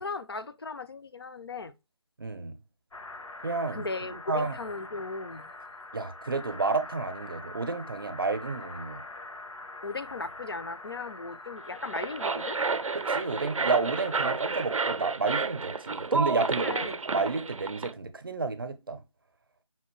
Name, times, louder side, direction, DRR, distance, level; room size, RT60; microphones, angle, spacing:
voice 1, 0.0-1.7 3.7-5.5 9.8-12.6 16.6-17.0, left 3 dB, 50° left, 0.4 m, -37 dB
voice 2, 2.2-2.6 3.4-3.9 4.1-4.6 5.9-9.0 12.9-19.0, right 4 dB, 45° right, 0.6 m, -31 dB
sound 1, 2.9-15.0, left 2 dB, 85° left, 0.8 m, -44 dB
sound 2, 11.7-17.9, right 4 dB, 90° right, 0.5 m, -31 dB
5.6 x 2.5 x 3.0 m
figure-of-eight pair, 165°, 16 cm